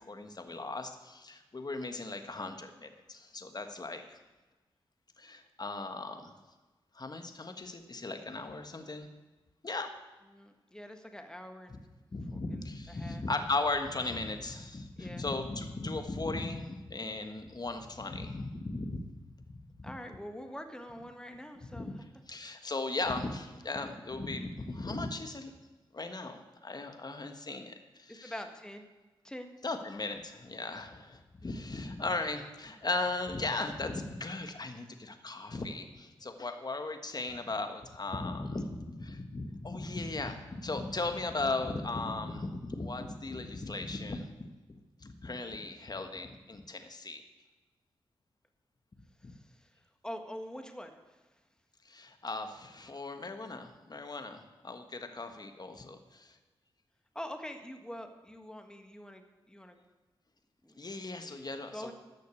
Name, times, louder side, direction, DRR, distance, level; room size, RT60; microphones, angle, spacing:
voice 1, 0.0-4.2 5.2-6.3 6.9-9.1 9.6-9.9 12.1-19.1 19.5-19.9 21.7-21.9 22.3-25.5 25.9-28.3 29.6-47.2 49.2-49.3 51.8-56.4 60.8-61.9, left 3 dB, 40° left, 7 dB, 1.4 m, -37 dB
voice 2, 10.3-11.8 12.3-13.2 15.0-15.2 19.8-22.0 28.2-28.8 29.2-29.5 31.4-31.6 49.3-49.7 50.0-50.9 57.1-59.2 59.5-59.8 60.6-60.8 61.1-61.9, equal, 5° left, 6 dB, 1.5 m, -45 dB
12.0 x 6.5 x 8.2 m, 1.2 s
cardioid pair, 40°, 10 cm